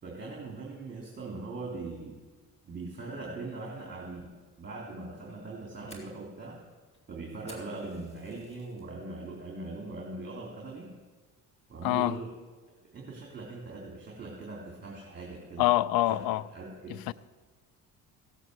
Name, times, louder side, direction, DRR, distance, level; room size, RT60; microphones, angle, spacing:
voice 1, 0.0-2.2 2.6-4.2 4.6-6.6 7.1-10.9 11.7-12.3 12.9-15.7 16.1-17.0, right 3 dB, 30° right, 3.4 m, -41 dB
Fire, 5.9-8.9 9.3-9.6 10.0-10.2 10.7-11.0, equal, 15° left, 3.8 m, -53 dB
voice 2, 11.8-12.2 15.6-16.4 17.1-17.2, left 16 dB, 70° left, 0.6 m, -25 dB
16.5 x 8.2 x 7.9 m
supercardioid pair, 90°, 37 cm